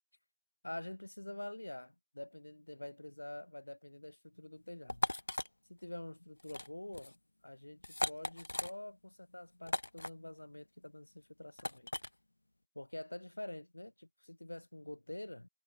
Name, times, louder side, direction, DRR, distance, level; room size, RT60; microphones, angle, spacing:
voice 1, 0.6-5.1 5.7-11.9 12.7-15.5, left 1 dB, 80° left, 3.2 m, -47 dB
sound 1, 4.9-5.5 6.4-6.7 6.9-7.1 7.8-8.7 9.7-10.1 11.6-12.1, left 1 dB, 65° left, 0.3 m, -37 dB
figure-of-eight pair, 175°, 0 cm